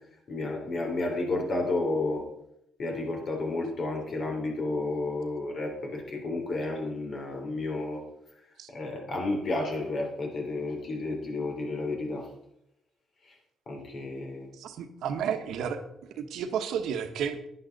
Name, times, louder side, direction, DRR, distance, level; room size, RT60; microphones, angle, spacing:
voice 1, 0.3-2.2 2.8-8.0 8.7-12.3 13.3-13.4 13.7-14.5, left 2 dB, 50° left, 2 dB, 3.4 m, -31 dB
voice 2, 14.6-15.8 16.2-17.5, right 7 dB, 80° right, 7 dB, 1.2 m, -32 dB
11.0 x 9.7 x 4.0 m, 0.80 s
cardioid pair, 90°, 0 cm